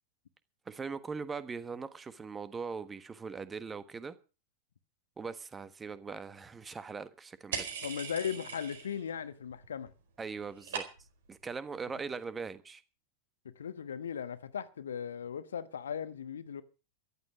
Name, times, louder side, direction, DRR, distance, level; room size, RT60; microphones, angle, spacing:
voice 1, 0.7-4.2 5.2-7.7 10.2-10.8 11.3-12.8, right 5 dB, 15° right, 1.3 m, -40 dB
sound 1, 7.5-9.1 9.4-9.9 10.2-11.3, right 7 dB, 60° right, 4.5 m, -40 dB
voice 2, 7.8-9.9 13.4-16.6, left 7 dB, 65° left, 1.2 m, -38 dB
14.5 x 11.5 x 6.2 m
figure-of-eight pair, 90°, 0 cm